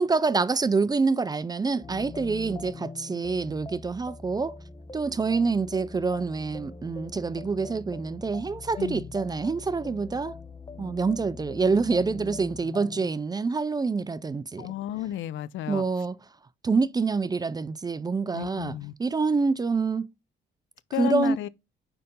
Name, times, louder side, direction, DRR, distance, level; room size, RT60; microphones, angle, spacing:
voice 1, 0.0-4.5 4.9-10.3 10.8-14.7 15.7-16.2 16.6-18.7 19.0-20.1 21.0-21.4, right 4 dB, 20° right, 0.3 m, -26 dB
sound 1, 1.8-13.1, left 3 dB, 20° left, 0.7 m, -42 dB
voice 2, 8.8-9.1 14.6-15.8 18.3-18.9 20.9-21.5, left 14 dB, 75° left, 0.5 m, -32 dB
5.0 x 4.5 x 5.3 m
cardioid pair, 90°, 20 cm